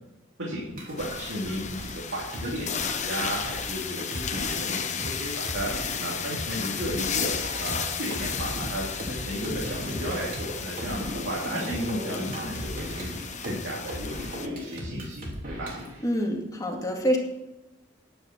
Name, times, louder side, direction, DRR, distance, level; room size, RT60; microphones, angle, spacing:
voice 1, 0.4-16.0, equal, 70° right, -5 dB, 3.0 m, -34 dB
sound 1, 0.7-5.1 5.4-6.4 6.8-15.9, equal, 50° right, 3.2 m, -37 dB
sound 2, 1.0-14.5, left 7 dB, 40° left, 1.0 m, -34 dB
voice 2, 16.0-17.2, equal, 20° left, 0 dB, 2.1 m, -26 dB
10.5 x 9.6 x 6.1 m, 0.99 s
head